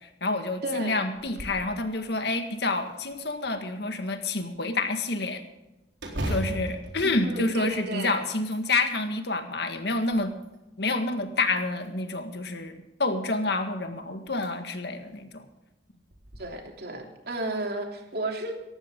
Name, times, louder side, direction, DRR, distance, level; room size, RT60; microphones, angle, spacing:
voice 1, 0.0-5.4 6.2-10.3 10.8-15.4, left 2 dB, 65° left, 6 dB, 1.9 m, -28 dB
voice 2, 0.6-1.0 7.0-8.2 16.4-18.5, right 2 dB, 60° right, 2 dB, 3.2 m, -33 dB
sound 1, 1.1-1.7 2.1-2.2 2.8-3.6 6.0-8.0 8.4-9.1 9.7-10.6 11.5-12.2 13.6-13.7 14.3-14.5 14.9-15.0 16.1-16.4, equal, 75° right, 4.2 m, -36 dB
18.5 x 14.5 x 3.8 m, 1.0 s
head